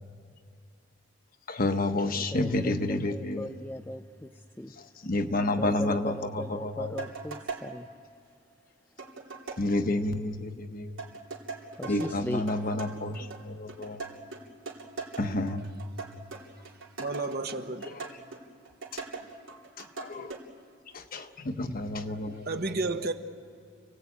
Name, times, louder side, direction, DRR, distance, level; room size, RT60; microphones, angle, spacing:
voice 1, 1.5-3.5 4.8-7.0 9.6-11.0 11.9-14.0 15.2-15.6 17.9-18.1 19.8-20.3 20.9-22.8, left 2 dB, 45° left, 7 dB, 1.2 m, -30 dB
voice 2, 2.1-4.3 4.6-4.7 5.5-7.9 11.8-12.4, left 1 dB, 10° left, 4 dB, 0.5 m, -38 dB
sound 1, 7.0-7.7 9.0-9.6 11.0-20.4, right 4 dB, 85° right, 3.3 m, -40 dB
voice 3, 17.0-17.9 22.5-23.1, right 3 dB, 50° right, 7 dB, 1.2 m, -31 dB
30.0 x 18.0 x 8.6 m, 2.4 s
head